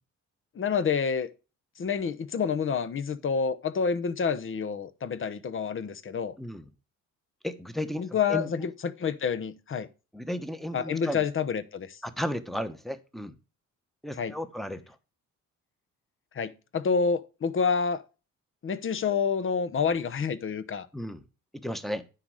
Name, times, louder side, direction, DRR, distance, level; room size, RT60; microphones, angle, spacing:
voice 1, 0.5-1.3 1.8-6.3 8.0-9.9 10.7-12.0 14.2-14.3 16.3-18.0 18.6-20.9, left 6 dB, 45° left, 0.9 m, -28 dB
voice 2, 6.4-6.7 7.4-8.7 10.1-11.2 12.0-13.4 14.0-15.0 20.9-21.2 21.5-22.0, equal, ahead, 1.1 m, -34 dB
9.7 x 4.2 x 6.4 m
cardioid pair, 90°, 30 cm